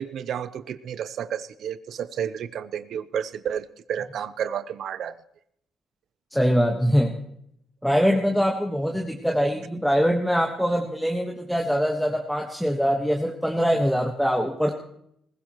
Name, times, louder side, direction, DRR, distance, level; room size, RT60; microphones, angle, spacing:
voice 1, 0.0-5.2, right 8 dB, 70° right, 14 dB, 0.7 m, -31 dB
voice 2, 6.3-7.2 7.8-14.7, equal, ahead, 1 dB, 1.4 m, -23 dB
20.5 x 15.0 x 3.1 m, 0.73 s
cardioid pair, 90°, 0 cm